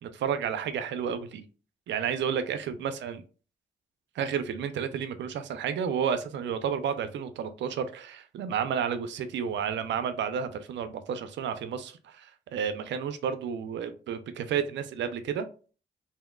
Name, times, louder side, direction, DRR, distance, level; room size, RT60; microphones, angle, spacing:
voice 1, 0.0-1.4 1.9-3.2 4.2-15.5, right 7 dB, 75° right, 0.5 m, -31 dB
3.5 x 2.6 x 2.2 m
cardioid pair, 65°, 19 cm